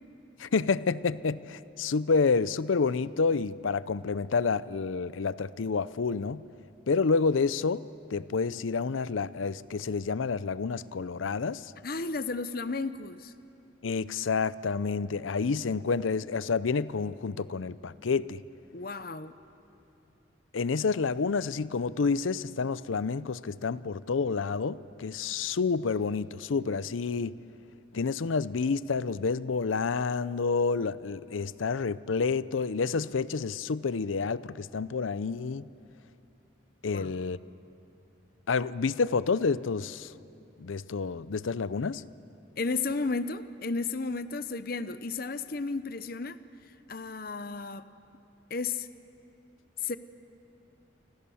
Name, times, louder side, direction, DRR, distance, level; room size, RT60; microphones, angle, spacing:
voice 1, 0.4-6.4 6.9-7.8 8.1-11.7 13.8-18.4 20.5-27.4 27.9-35.7 36.8-37.4 38.5-40.1 40.6-42.0, left 4 dB, 85° left, 0.6 m, -29 dB
voice 2, 11.8-13.3 18.7-19.3 36.9-37.1 42.6-46.4 46.9-47.9 48.5-48.9 49.8-50.0, left 4 dB, 50° left, 0.8 m, -33 dB
29.5 x 25.0 x 7.1 m
head